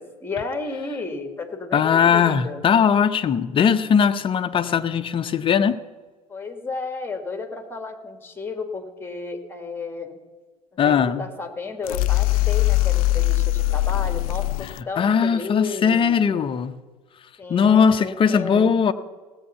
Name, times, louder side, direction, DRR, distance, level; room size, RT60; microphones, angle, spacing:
voice 1, 0.0-2.6 6.3-10.2 10.9-16.4 17.4-18.7, left 3 dB, 10° left, 7 dB, 1.9 m, -33 dB
voice 2, 1.7-5.8 10.8-11.2 15.0-16.8 17.5-18.9, left 7 dB, 25° left, 9 dB, 0.8 m, -19 dB
sound 1, 11.8-14.8, left 17 dB, 65° left, 0.5 m, -21 dB
17.5 x 8.1 x 5.7 m, 1.4 s
hypercardioid pair, 80°, 19 cm